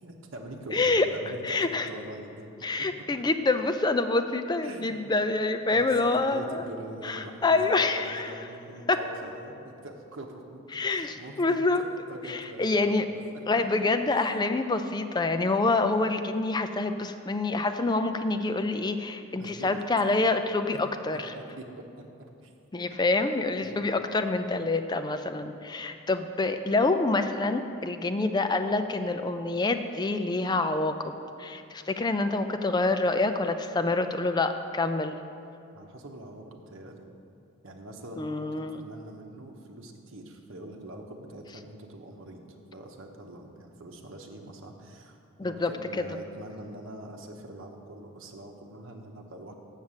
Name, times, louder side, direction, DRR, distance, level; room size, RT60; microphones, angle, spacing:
voice 1, 0.0-2.5 3.0-3.2 4.6-5.0 5.7-10.6 10.9-12.9 13.5-13.6 14.1-14.5 19.4-19.8 21.3-22.0 22.4-22.5 23.6-23.9 35.7-37.1 37.6-42.4 42.7-49.5, right 1 dB, 65° right, 1 dB, 0.9 m, -44 dB
voice 2, 0.7-1.1 1.4-1.9 2.6-6.6 7.0-8.3 8.9-9.0 10.7-11.8 12.3-13.0 13.5-21.2 22.7-31.1 31.4-35.1 38.2-38.8 45.4-45.7, left 3 dB, 20° left, 8 dB, 0.4 m, -26 dB
7.3 x 6.4 x 7.3 m, 2.6 s
head